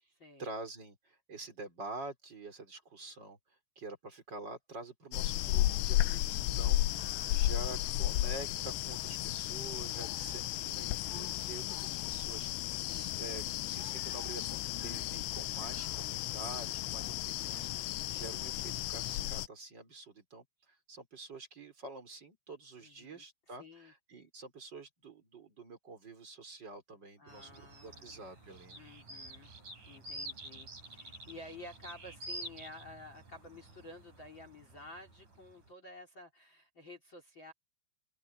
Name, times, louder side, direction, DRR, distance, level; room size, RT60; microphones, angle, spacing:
voice 1, 0.4-3.4 3.8-28.8, right 3 dB, 20° right, 4.6 m, -47 dB
sound 1, 5.1-19.5, left 15 dB, 80° left, 2.6 m, -34 dB
voice 2, 6.9-8.3 12.9-13.2 22.8-23.9 27.2-28.4 28.7-29.5 29.9-37.5, left 2 dB, 25° left, 3.2 m, -52 dB
sound 2, 27.3-35.7, right 1 dB, 40° right, 8.5 m, -49 dB
open air
omnidirectional pair, 5.8 m